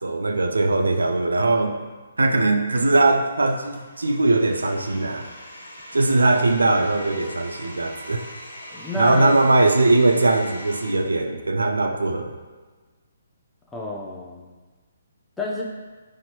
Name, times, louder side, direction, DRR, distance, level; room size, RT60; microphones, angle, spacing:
voice 1, 0.0-1.8 2.2-5.3 5.9-8.2 9.0-12.4, right 2 dB, 75° right, 4 dB, 0.3 m, -20 dB
Domestic sounds home sounds, 3.5-10.9, equal, 90° left, 0.6 m, -40 dB
voice 2, 8.7-9.4 13.7-14.5 15.4-15.6, left 2 dB, 10° left, -3 dB, 0.5 m, -29 dB
4.1 x 2.5 x 2.9 m, 1.3 s
figure-of-eight pair, 135°, 0 cm